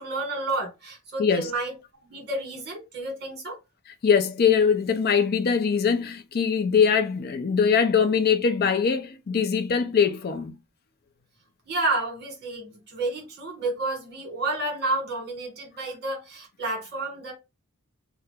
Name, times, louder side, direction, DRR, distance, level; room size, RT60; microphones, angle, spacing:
voice 1, 0.0-1.7 2.0-3.6 11.6-17.3, right 2 dB, 50° right, 1.5 m, -30 dB
voice 2, 4.0-10.6, left 6 dB, 45° left, 0.4 m, -22 dB
2.8 x 2.4 x 3.3 m
head